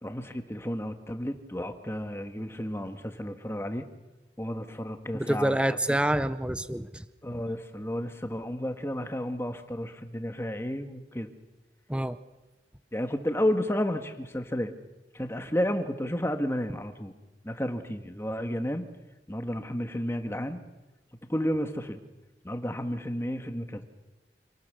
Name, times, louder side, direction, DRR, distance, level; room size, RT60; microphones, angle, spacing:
voice 1, 0.0-3.9 4.4-6.0 7.2-11.3 12.9-14.7 15.1-17.1 17.4-18.8 19.3-20.6 21.3-22.0 22.4-23.8, equal, 15° left, 7 dB, 1.7 m, -32 dB
voice 2, 5.1-7.0 11.9-12.2, right 1 dB, 5° right, 13 dB, 0.7 m, -27 dB
27.5 x 19.0 x 6.9 m, 1.1 s
head